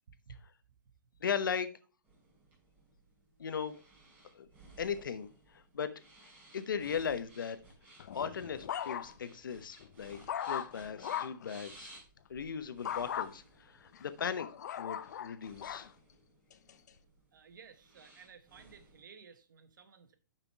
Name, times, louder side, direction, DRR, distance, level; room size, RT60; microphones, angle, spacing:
voice 1, 0.1-0.4 17.3-20.1, right 6 dB, 75° right, 1.3 m, -55 dB
voice 2, 1.2-1.7 3.4-3.8 4.3-4.5 4.8-5.9 6.5-7.6 8.1-10.2 10.5-11.9 12.3-14.5 14.8-15.9, left 7 dB, 85° left, 1.0 m, -37 dB
sound 1, 2.0-19.0, right 2 dB, 15° right, 3.0 m, -59 dB
sound 2, 8.0-9.4 9.8-11.5 12.9-13.3 13.9-15.9 16.5-16.9, left 9 dB, 60° left, 0.7 m, -39 dB
6.7 x 5.9 x 4.6 m
hypercardioid pair, 160°, 11 cm